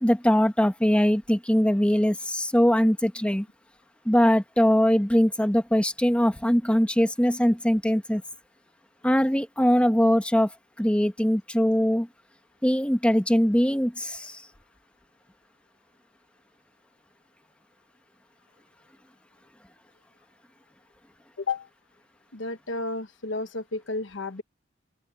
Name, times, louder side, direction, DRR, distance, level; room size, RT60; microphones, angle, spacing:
voice 1, 0.0-3.5 4.0-8.2 9.0-10.5 10.8-12.1 12.6-14.4, equal, 5° left, 1.3 m, -22 dB
voice 2, 21.4-21.7 22.3-24.4, left 3 dB, 85° left, 1.3 m, -32 dB
open air
head